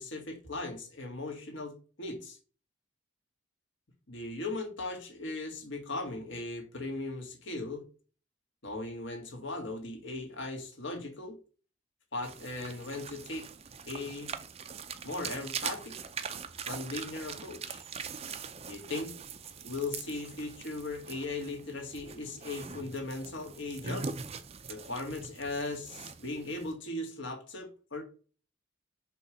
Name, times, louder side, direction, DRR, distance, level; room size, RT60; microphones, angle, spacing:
voice 1, 0.0-2.4 4.1-7.8 8.6-11.4 12.1-13.5 13.8-14.3 15.0-16.0 16.7-17.8 18.7-19.1 19.6-24.1 24.7-28.0, left 2 dB, 65° left, 1.8 m, -38 dB
sound 1, 12.2-26.7, right 6 dB, 30° right, 0.5 m, -42 dB
6.8 x 3.2 x 5.1 m
head